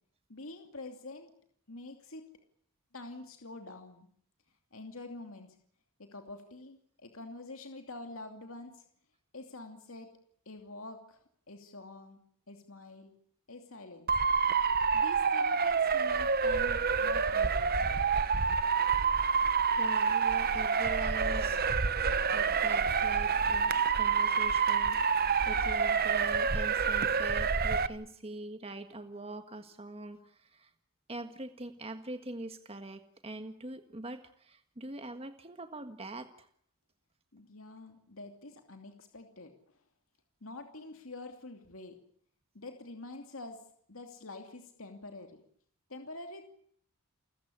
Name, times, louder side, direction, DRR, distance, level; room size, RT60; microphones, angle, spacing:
voice 1, 0.3-1.3 1.7-2.2 2.9-4.1 4.7-5.6 6.0-8.8 9.3-10.1 10.5-12.2 12.5-13.1 13.5-14.1 14.9-17.9 37.3-39.8 40.4-41.9 42.5-43.6 43.9-45.4 45.9-46.6, left 2 dB, 65° left, 5 dB, 2.7 m, -46 dB
Motor vehicle (road) / Siren, 14.1-27.9, right 5 dB, 45° right, 1.1 m, -28 dB
voice 2, 19.8-21.6 22.3-30.7 31.1-36.5, right 2 dB, 25° right, 7 dB, 1.6 m, -44 dB
29.5 x 15.0 x 10.0 m, 0.64 s
head